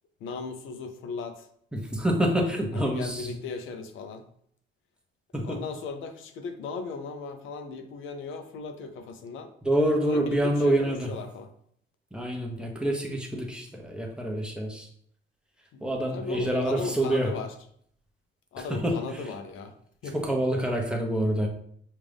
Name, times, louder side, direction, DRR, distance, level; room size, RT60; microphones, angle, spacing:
voice 1, 0.2-1.5 2.7-4.2 5.4-9.5 10.1-11.5 15.7-15.8 16.1-17.5 18.5-19.7 20.0-20.3, left 4 dB, 85° left, 7 dB, 0.6 m, -37 dB
voice 2, 1.7-3.3 5.3-5.6 9.6-11.1 12.1-14.9 15.8-17.3 18.7-19.0 20.1-21.5, right 1 dB, 5° right, 1 dB, 0.9 m, -27 dB
5.3 x 2.5 x 3.4 m, 0.65 s
cardioid pair, 90°, 20 cm